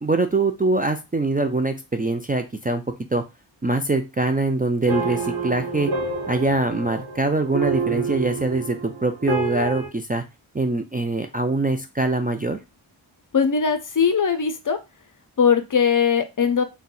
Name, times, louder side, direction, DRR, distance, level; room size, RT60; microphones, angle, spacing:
voice 1, 0.0-2.8 3.1-3.2 3.6-5.9 6.3-10.2 10.5-12.6, right 2 dB, 20° right, 5 dB, 0.4 m, -23 dB
sound 1, 4.9-9.9, right 4 dB, 50° right, 0.9 m, -28 dB
voice 2, 13.3-14.8 15.4-16.6, left 6 dB, 45° left, 9 dB, 0.6 m, -20 dB
2.6 x 2.2 x 3.9 m, 0.25 s
cardioid pair, 40°, 48 cm